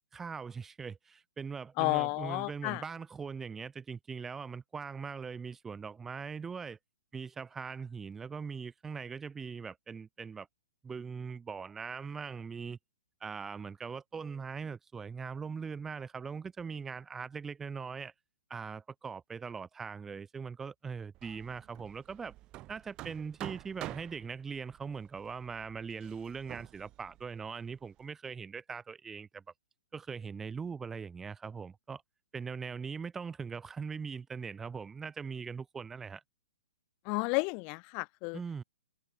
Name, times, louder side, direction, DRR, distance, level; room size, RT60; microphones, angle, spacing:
voice 1, 0.1-6.8 7.1-10.5 10.8-12.8 13.2-18.1 18.5-22.3 22.7-29.4 29.9-32.0 32.3-36.2 38.3-38.6, right 5 dB, 10° right, 1.4 m, -41 dB
voice 2, 1.8-2.8 37.1-38.4, left 34 dB, 35° left, 1.8 m, -32 dB
Hammer, 21.1-28.0, right 17 dB, 30° right, 5.0 m, -48 dB
hypercardioid pair, 135°, 3 cm